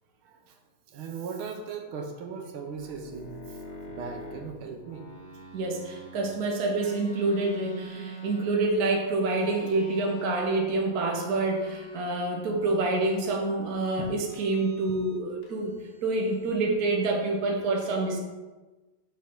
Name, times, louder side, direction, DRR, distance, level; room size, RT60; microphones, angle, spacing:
voice 1, 0.2-0.6 0.9-3.6 3.9-5.0 14.0-14.1, right 5 dB, 85° right, 3 dB, 1.7 m, -38 dB
sound 1, 2.7-6.3 6.7-8.9 9.3-10.6 10.9-12.2 12.6-13.7 14.3-15.2 15.4-16.6, right 1 dB, 40° left, 1.2 m, -44 dB
voice 2, 5.5-15.7 16.0-18.2, right 2 dB, 55° right, 1 dB, 1.4 m, -27 dB
5.9 x 5.3 x 4.4 m, 1.2 s
omnidirectional pair, 2.2 m